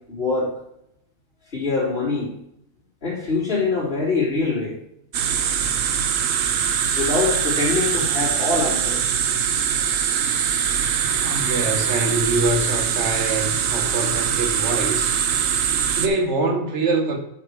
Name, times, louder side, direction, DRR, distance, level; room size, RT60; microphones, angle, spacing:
voice 1, 0.1-0.5 1.5-2.3 3.0-4.8 6.6-9.1, left 3 dB, 45° left, -9 dB, 3.0 m, -24 dB
sound 1, 5.1-16.1, right 8 dB, 75° right, 1.1 m, -22 dB
voice 2, 11.2-15.2 15.9-17.2, right 2 dB, 60° right, 4 dB, 1.4 m, -24 dB
8.3 x 5.7 x 4.6 m, 0.78 s
omnidirectional pair, 1.4 m